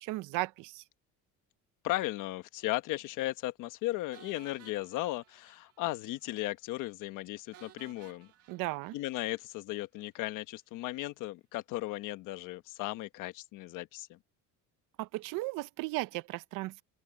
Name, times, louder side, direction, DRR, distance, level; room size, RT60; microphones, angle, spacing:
voice 1, 0.0-0.8 8.5-8.9 15.0-16.8, right 20 dB, 80° right, 0.7 m, -36 dB
voice 2, 1.8-8.3 8.9-14.2, left 17 dB, 75° left, 1.3 m, -36 dB
sound 1, 4.1-6.0 6.3-6.4 6.8-6.9 7.5-9.8, right 12 dB, 50° right, 1.6 m, -58 dB
open air
cardioid pair, 175°, 32 cm